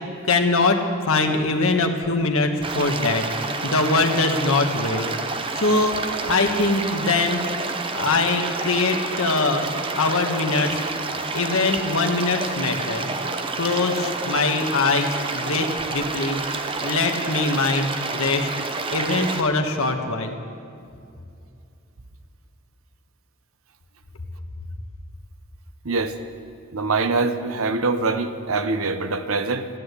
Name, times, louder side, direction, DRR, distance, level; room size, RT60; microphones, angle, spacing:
voice 1, 0.3-5.1 5.5-5.9 6.3-7.4 7.9-9.6 9.9-10.8 11.3-13.1 13.6-16.4 16.8-18.5 18.9-20.4, left 3 dB, 85° left, 4 dB, 1.3 m, -22 dB
sound 1, 2.6-19.4, right 3 dB, 25° right, 0.7 m, -29 dB
voice 2, 25.8-26.2 26.7-29.7, right 3 dB, 80° right, 9 dB, 0.9 m, -24 dB
14.0 x 10.0 x 8.1 m, 2.5 s
head